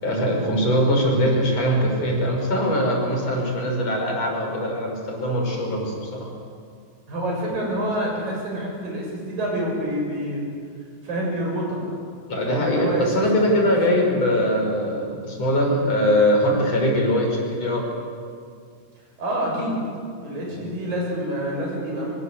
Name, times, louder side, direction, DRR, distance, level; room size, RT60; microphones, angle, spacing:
voice 1, 0.0-6.3 12.3-17.8 20.5-20.6, equal, 50° left, 0 dB, 6.6 m, -22 dB
voice 2, 7.1-10.4 11.0-11.8 12.5-14.0 15.7-15.8 19.2-19.8 20.2-22.1, right 1 dB, 85° right, -2 dB, 9.0 m, -27 dB
24.5 x 24.5 x 8.2 m, 2.2 s
omnidirectional pair, 3.9 m